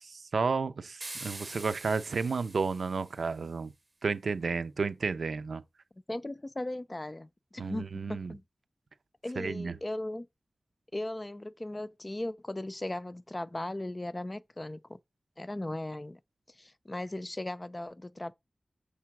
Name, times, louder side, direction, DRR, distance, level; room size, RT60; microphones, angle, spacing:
voice 1, 0.0-3.7 4.0-5.6 7.6-8.3 9.4-9.7, right 4 dB, 90° right, 0.6 m, -32 dB
sound 1, 1.0-3.4, right 2 dB, 35° right, 0.7 m, -45 dB
voice 2, 6.1-8.4 9.2-10.3 10.9-15.0 15.4-16.2 16.6-18.3, left 1 dB, 25° left, 0.4 m, -37 dB
6.7 x 3.5 x 5.9 m
wide cardioid pair, 90°, 0 cm